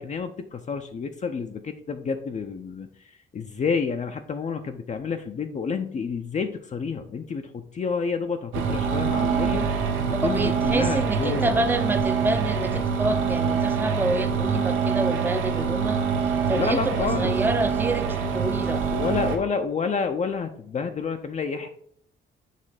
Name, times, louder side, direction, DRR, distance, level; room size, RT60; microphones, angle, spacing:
voice 1, 0.0-11.5 16.5-17.3 18.9-21.7, left 5 dB, 35° left, 6 dB, 0.5 m, -29 dB
sound 1, 8.5-19.4, right 6 dB, 85° right, 1.0 m, -25 dB
voice 2, 10.2-16.0 16.5-18.9, right 2 dB, 10° right, 8 dB, 0.6 m, -27 dB
6.6 x 3.2 x 4.8 m, 0.65 s
cardioid pair, 90°, 20 cm